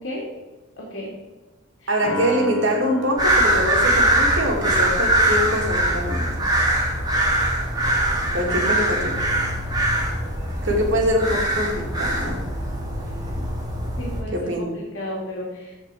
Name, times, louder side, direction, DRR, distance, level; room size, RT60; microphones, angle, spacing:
voice 1, 0.8-1.1 1.8-2.3 14.0-14.3 14.7-15.8, equal, 75° left, -5 dB, 2.6 m, -33 dB
voice 2, 1.9-6.3 8.3-9.1 10.6-12.4 14.3-14.7, equal, 65° right, 0 dB, 2.7 m, -24 dB
Piano, 2.0-8.4, equal, 15° left, 3.4 m, -37 dB
sound 1, 3.2-14.2, right 1 dB, 20° right, 2.2 m, -22 dB
14.5 x 5.2 x 4.9 m, 1.1 s
head